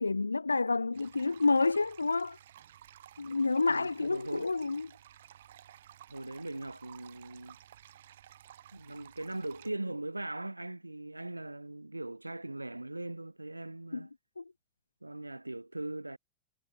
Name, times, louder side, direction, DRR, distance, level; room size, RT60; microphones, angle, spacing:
voice 1, 0.0-2.4 3.2-4.9 13.9-14.1 14.4-14.5, left 3 dB, 85° left, 0.3 m, -29 dB
sound 1, 0.9-9.7, right 11 dB, 65° right, 3.2 m, -55 dB
voice 2, 3.6-4.5 6.1-7.6 8.7-14.1 15.0-16.2, right 2 dB, 90° right, 1.8 m, -40 dB
figure-of-eight pair, 90°, 0 cm